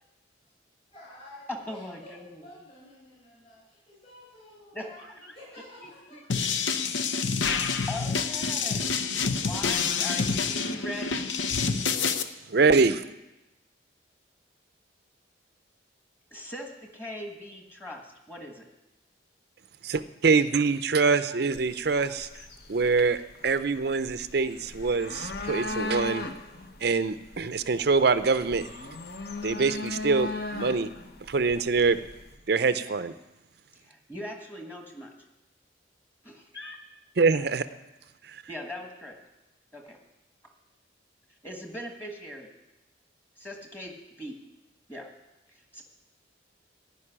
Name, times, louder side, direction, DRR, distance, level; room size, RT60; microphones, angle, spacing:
voice 1, 0.9-2.1 2.4-6.2, left 1 dB, 35° left, -7 dB, 6.0 m, -50 dB
voice 2, 1.5-2.4 4.7-5.3 5.8-6.3 7.9-8.9 9.3-11.3 16.3-18.7 22.0-22.1 24.8-24.9 33.7-35.1 36.2-36.7 37.3-37.4 38.5-39.2 39.7-40.0 41.4-42.5 43.4-44.4 44.9-45.1 45.5-45.8, left 1 dB, 10° left, 2 dB, 1.4 m, -40 dB
sound 1, 6.3-12.2, left 5 dB, 80° left, 0.8 m, -27 dB
voice 3, 12.5-13.0 19.8-22.3 22.7-26.3 26.8-28.7 29.4-30.9 31.3-32.0 32.5-33.1 37.2-37.6 38.3-38.4, right 4 dB, 55° right, 12 dB, 0.5 m, -24 dB
sound 2, 21.5-32.4, left 2 dB, 55° left, 0.9 m, -38 dB
16.0 x 5.4 x 9.8 m, 0.99 s
head